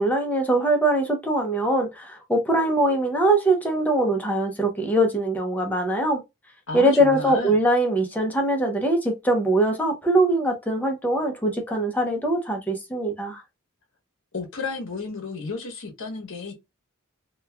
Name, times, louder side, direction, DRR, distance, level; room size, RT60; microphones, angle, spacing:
voice 1, 0.0-6.2 6.7-13.4, right 1 dB, 10° left, 0.6 m, -22 dB
voice 2, 6.7-7.6 14.3-16.5, left 4 dB, 60° left, 0.9 m, -33 dB
3.0 x 2.3 x 2.2 m
head